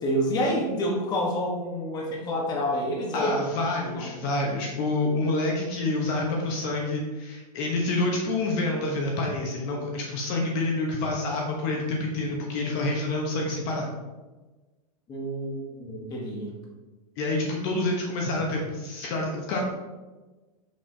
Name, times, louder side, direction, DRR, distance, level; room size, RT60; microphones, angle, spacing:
voice 1, 0.0-4.3 15.1-16.5, equal, 20° left, -2 dB, 1.2 m, -28 dB
voice 2, 3.1-13.9 17.2-19.6, left 2 dB, 40° left, -1 dB, 1.1 m, -28 dB
6.5 x 6.2 x 2.8 m, 1.2 s
supercardioid pair, 160°, 20 cm